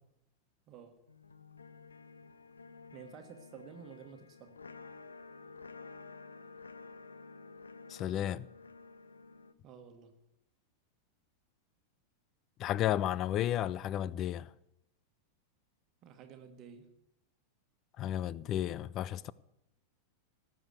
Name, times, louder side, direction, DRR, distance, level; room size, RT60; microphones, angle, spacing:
voice 1, 0.7-1.0 2.9-4.6 9.6-10.1 16.0-16.9, right 7 dB, 35° right, 1.5 m, -51 dB
sound 1, 1.1-9.5, left 4 dB, 75° left, 0.6 m, -52 dB
voice 2, 7.9-8.5 12.6-14.5 18.0-19.3, left 12 dB, 35° left, 0.5 m, -33 dB
17.5 x 7.2 x 8.0 m
figure-of-eight pair, 90°, 0 cm